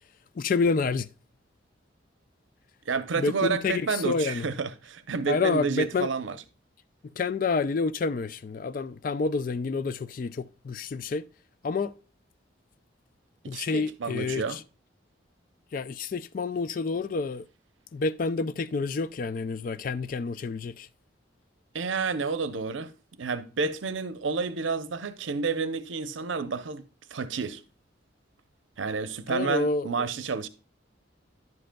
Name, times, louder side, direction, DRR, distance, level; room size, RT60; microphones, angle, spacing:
voice 1, 0.4-1.1 3.1-4.5 5.3-6.1 7.2-11.2 11.6-11.9 13.5-14.6 15.7-17.5 17.9-20.9 29.3-30.1, left 4 dB, 45° left, 0.3 m, -28 dB
voice 2, 2.9-6.4 13.5-14.6 21.7-22.9 23.2-26.8 27.1-27.6 28.8-30.5, right 5 dB, 90° right, 0.7 m, -30 dB
10.5 x 7.7 x 2.2 m
head